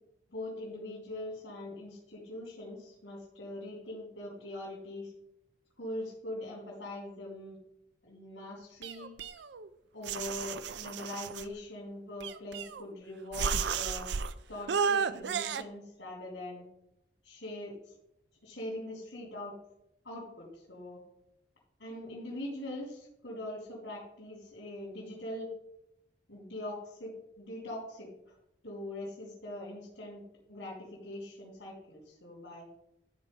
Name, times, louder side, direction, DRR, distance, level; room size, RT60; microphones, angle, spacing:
voice 1, 0.3-5.1 5.8-7.5 8.0-9.1 9.9-14.1 14.5-16.6 17.2-17.9 18.4-19.6 20.0-21.0 21.8-25.5 26.3-28.4 28.6-30.2 30.5-32.7, left 1 dB, 80° left, -7 dB, 3.4 m, -42 dB
sound 1, 8.8-9.7 10.1-11.5 12.2-12.9 13.3-14.3 14.7-15.6, right 6 dB, 70° right, 0.5 m, -33 dB
12.5 x 4.3 x 5.4 m, 0.81 s
head